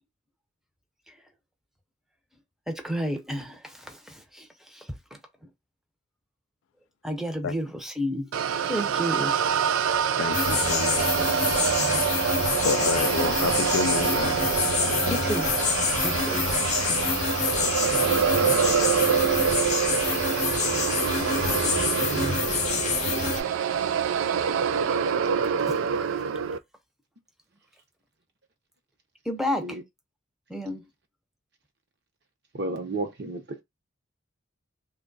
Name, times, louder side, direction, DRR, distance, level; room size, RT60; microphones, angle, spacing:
voice 1, 2.7-5.2 7.0-8.3 8.7-9.3 11.7-12.0 15.1-15.5 16.0-16.5 16.9-17.1 21.3-21.5 24.8-24.9 25.4-26.2 29.2-29.8 30.5-30.9, equal, ahead, 0.6 m, -32 dB
sound 1, 8.3-26.6, right 7 dB, 75° right, 0.3 m, -26 dB
voice 2, 10.2-11.6 12.6-14.5 14.8-15.3, left 7 dB, 75° left, 0.3 m, -30 dB
sound 2, 10.3-23.4, left 6 dB, 35° left, 0.7 m, -27 dB
voice 3, 22.1-22.6 23.1-23.4 29.6-29.8 32.5-33.6, right 2 dB, 55° right, 0.8 m, -34 dB
3.1 x 2.3 x 3.9 m
head